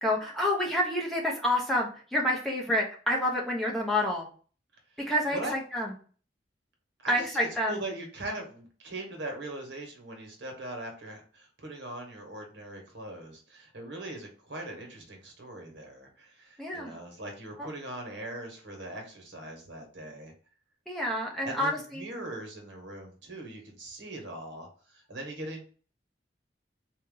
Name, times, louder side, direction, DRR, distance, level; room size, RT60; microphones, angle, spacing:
voice 1, 0.0-4.3 5.0-5.9 7.1-7.8 16.6-16.9 17.6-17.7 20.9-22.1, left 1 dB, ahead, -3 dB, 0.8 m, -28 dB
voice 2, 5.0-5.5 7.0-20.3 21.4-25.6, right 1 dB, 75° right, 3 dB, 1.3 m, -40 dB
3.5 x 2.8 x 3.8 m, 0.40 s
head